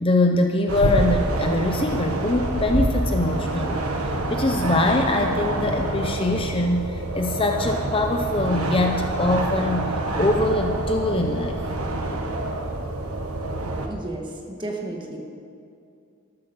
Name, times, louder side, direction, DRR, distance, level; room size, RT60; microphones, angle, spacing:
voice 1, 0.0-11.6, left 2 dB, 25° left, 4 dB, 0.6 m, -23 dB
sound 1, 0.7-13.9, right 2 dB, 85° right, 1.3 m, -27 dB
voice 2, 13.9-15.2, right 2 dB, 20° right, 0 dB, 1.6 m, -33 dB
13.0 x 12.5 x 5.4 m, 2.5 s
head